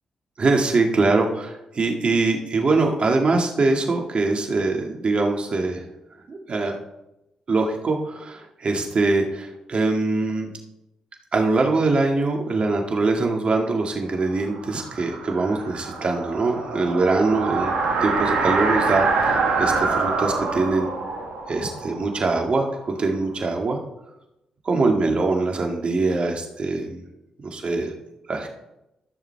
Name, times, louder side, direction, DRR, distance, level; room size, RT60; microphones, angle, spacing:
voice 1, 0.4-5.8 6.3-6.8 7.5-10.5 11.3-17.7 18.0-20.9 21.5-23.8 24.6-27.0 27.4-27.9 28.3-28.5, right 3 dB, 50° right, 2 dB, 2.1 m, -23 dB
sound 1, 14.2-23.0, right 4 dB, 90° right, 1.7 m, -25 dB
14.5 x 6.8 x 3.5 m, 0.89 s
supercardioid pair, 45°, 2 cm